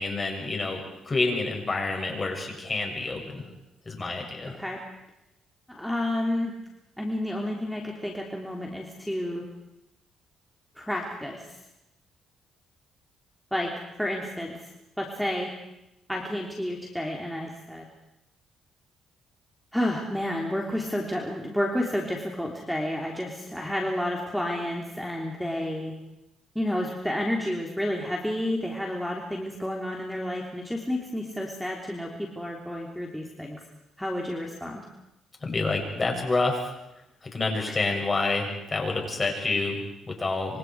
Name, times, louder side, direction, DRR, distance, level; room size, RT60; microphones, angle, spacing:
voice 1, 0.0-3.4 3.9-4.6 35.4-36.7 37.2-40.6, left 3 dB, 30° left, 1 dB, 7.3 m, -28 dB
voice 2, 4.5-4.8 5.7-6.6 7.0-9.5 10.8-11.6 13.5-13.7 14.0-14.6 15.0-15.5 16.1-17.9 19.7-25.9 26.5-33.6 34.0-34.8, left 1 dB, ahead, -1 dB, 3.4 m, -30 dB
27.0 x 26.0 x 4.9 m, 0.89 s
cardioid pair, 90°, 0 cm